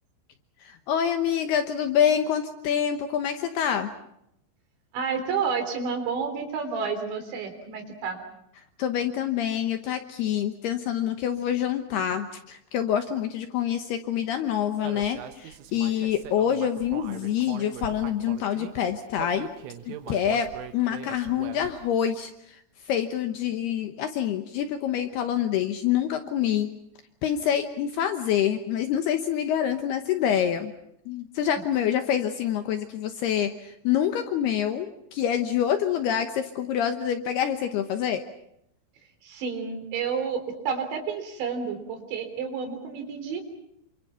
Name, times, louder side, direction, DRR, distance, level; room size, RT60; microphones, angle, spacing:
voice 1, 0.6-3.9 8.8-19.5 19.9-20.5 20.7-22.6 22.9-26.7 27.2-30.7 31.1-38.2, left 9 dB, 70° left, 7 dB, 2.6 m, -26 dB
voice 2, 4.9-8.2 39.2-43.4, right 5 dB, 65° right, 6 dB, 5.7 m, -30 dB
Human voice, 14.8-18.7 19.1-21.9, right 10 dB, 85° right, 3.9 m, -41 dB
27.5 x 26.0 x 5.8 m, 0.77 s
omnidirectional pair, 5.6 m